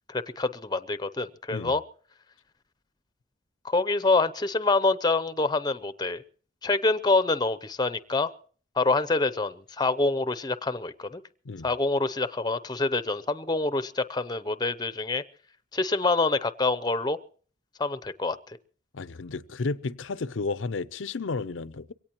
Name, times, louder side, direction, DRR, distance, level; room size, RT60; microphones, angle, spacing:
voice 1, 0.1-1.8 3.6-6.2 6.6-8.3 8.8-11.2 11.6-15.2 15.7-17.2 17.8-18.6, left 3 dB, 20° left, 0.6 m, -26 dB
voice 2, 18.9-21.9, left 3 dB, 85° left, 0.6 m, -32 dB
23.0 x 17.5 x 3.0 m
head